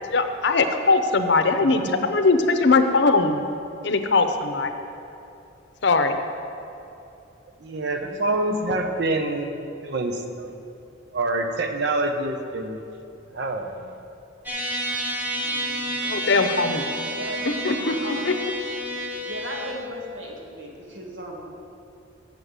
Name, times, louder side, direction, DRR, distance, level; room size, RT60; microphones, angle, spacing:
voice 1, 0.1-1.8 2.1-3.4 3.8-4.3 4.5-4.7 5.8-6.2 16.0-16.8 17.5-17.9 18.3-18.4, left 3 dB, 60° left, 7 dB, 0.7 m, -20 dB
voice 2, 1.6-2.1 7.6-10.5 11.1-12.8 13.3-13.9, right 2 dB, 60° right, 5 dB, 0.8 m, -27 dB
voice 3, 7.9-8.8 15.4-16.2 17.0-18.4 19.3-21.5, right 1 dB, 75° right, -1 dB, 1.7 m, -38 dB
sound 1, 14.5-19.7, equal, 10° right, 1.2 m, -30 dB
7.7 x 6.8 x 8.1 m, 2.8 s
head